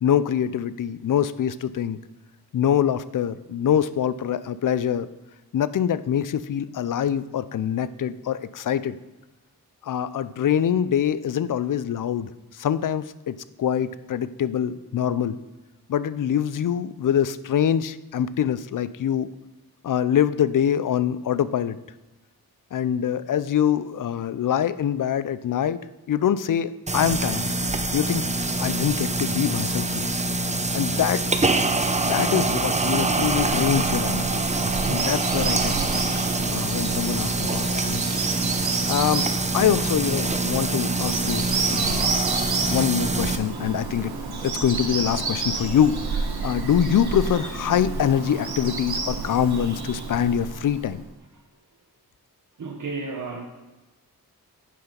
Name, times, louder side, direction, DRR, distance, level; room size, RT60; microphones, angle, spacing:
voice 1, 0.0-2.0 2.5-5.1 5.5-9.0 9.8-15.4 15.9-19.3 19.8-21.8 22.7-25.8 26.1-27.5 27.9-28.3 28.6-30.1 30.7-31.2 31.8-34.4 34.9-38.0 38.6-42.1 42.7-44.1 44.4-51.0, left 9 dB, 55° left, 15 dB, 0.5 m, -24 dB
sound 1, 26.9-43.4, right 3 dB, 20° right, 0.7 m, -25 dB
Bird vocalization bird call bird song, 33.0-51.0, right 4 dB, 75° right, 1.4 m, -30 dB
voice 2, 52.6-53.5, right 4 dB, 55° right, 1 dB, 1.0 m, -32 dB
8.4 x 5.6 x 5.1 m, 1.1 s
cardioid pair, 50°, 38 cm